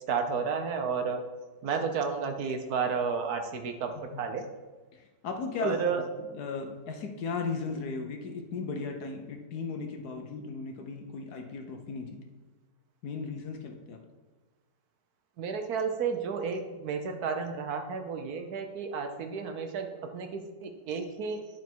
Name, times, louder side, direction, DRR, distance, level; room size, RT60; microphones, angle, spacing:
voice 1, 0.1-1.2 1.6-4.4 5.6-6.0 15.4-19.9 20.1-21.4, right 5 dB, 65° right, 5 dB, 1.2 m, -32 dB
voice 2, 4.9-5.8 6.2-12.2 13.0-14.0, left 4 dB, 65° left, 4 dB, 1.4 m, -36 dB
11.0 x 4.6 x 4.5 m, 1.3 s
omnidirectional pair, 1.9 m